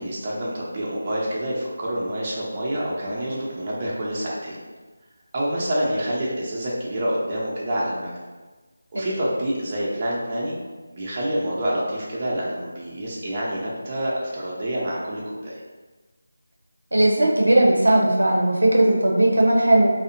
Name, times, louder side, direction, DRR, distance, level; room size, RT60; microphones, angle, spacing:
voice 1, 0.0-4.6 5.3-8.1 8.9-10.6 10.9-15.6, right 1 dB, 30° right, -6 dB, 0.5 m, -27 dB
voice 2, 16.9-19.9, right 1 dB, 90° right, -1 dB, 0.5 m, -17 dB
2.6 x 2.0 x 2.5 m, 1.3 s
figure-of-eight pair, 165°, 0 cm